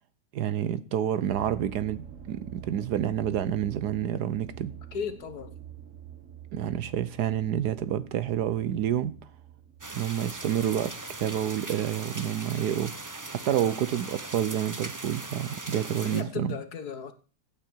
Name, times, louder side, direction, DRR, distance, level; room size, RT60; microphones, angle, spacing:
voice 1, 0.3-4.7 6.5-9.1 9.9-16.5, right 10 dB, 65° right, 1.2 m, -29 dB
sound 1, 1.3-13.6 14.1-14.5 15.1-15.2 15.5-15.6, right 9 dB, 50° right, 1.3 m, -47 dB
voice 2, 4.9-5.5 16.0-17.1, left 6 dB, 60° left, 1.7 m, -35 dB
sound 2, 9.8-16.2, right 2 dB, 25° right, 0.4 m, -40 dB
15.5 x 8.7 x 4.5 m
omnidirectional pair, 2.0 m